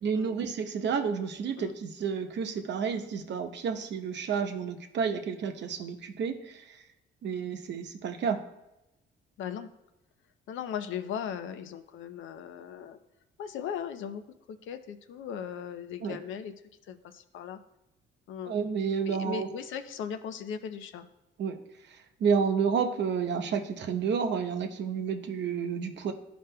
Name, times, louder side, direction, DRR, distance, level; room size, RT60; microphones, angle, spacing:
voice 1, 0.0-6.8 7.2-8.5 16.0-16.2 18.5-19.5 21.4-21.6 21.9-26.1, right 6 dB, 65° right, 6 dB, 0.8 m, -30 dB
voice 2, 9.4-9.7 10.5-13.0 13.4-14.2 14.5-16.5 16.9-17.6 18.3-18.5 19.1-21.0, left 8 dB, 80° left, 9 dB, 0.6 m, -38 dB
12.0 x 5.1 x 2.2 m, 0.94 s
cardioid pair, 90°, 20 cm